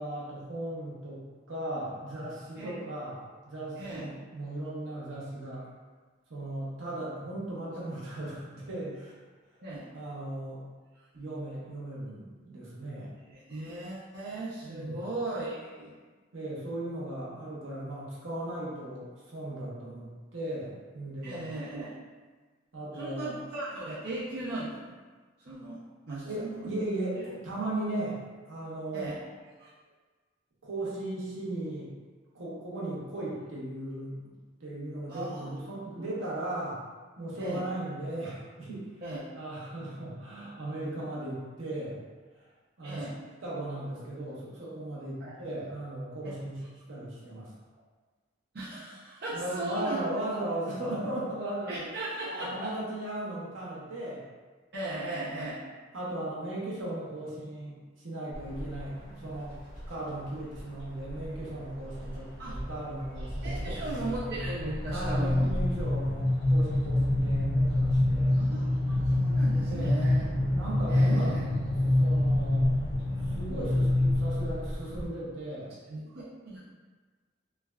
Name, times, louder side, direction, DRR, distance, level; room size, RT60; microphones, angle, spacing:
voice 1, 0.0-5.7 6.3-9.2 9.9-10.6 11.1-13.1 14.6-15.0 16.3-21.4 22.7-23.3 26.3-28.2 28.5-29.3 30.6-31.9 32.3-34.3 34.6-36.8 37.2-38.9 39.4-42.0 42.4-42.5 42.8-43.1 43.4-46.6 46.9-47.5 49.3-51.9 52.3-54.2 54.9-55.4 55.9-57.8 58.0-59.6 59.9-63.8 64.9-68.3 69.7-70.0 70.5-71.3 72.0-72.7 73.2-75.7, right 1 dB, 80° right, -6 dB, 0.8 m, -37 dB
voice 2, 3.8-4.1 9.6-9.9 13.3-15.9 21.2-21.9 22.9-25.0 25.4-26.6 28.9-29.2 29.6-29.7 35.1-35.6 37.4-37.7 39.0-39.2 42.8-43.2 45.2-45.3 48.5-50.0 51.7-52.7 54.7-55.6 62.4-62.5 63.4-65.5 68.4-70.3 70.9-71.4 75.9-76.6, right 2 dB, 50° right, -9 dB, 0.5 m, -37 dB
sound 1, 58.3-58.9 59.3-59.9 60.6-61.4 61.8-62.2 62.5-75.1, left 1 dB, 5° left, 1.2 m, -27 dB
3.2 x 2.2 x 2.2 m, 1.4 s
head